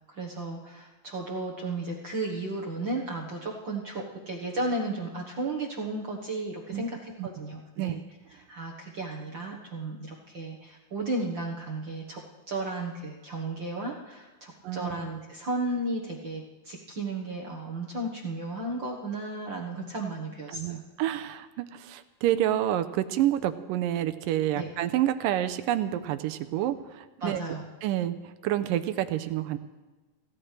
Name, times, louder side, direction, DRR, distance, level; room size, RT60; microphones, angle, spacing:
voice 1, 0.1-8.0 8.3-20.8 24.6-24.7 27.2-27.7, right 2 dB, 55° right, -1 dB, 1.4 m, -34 dB
voice 2, 14.6-15.0 20.5-27.4 27.8-29.6, right 12 dB, 80° right, 11 dB, 2.3 m, -28 dB
25.0 x 16.5 x 3.3 m, 1.2 s
omnidirectional pair, 4.0 m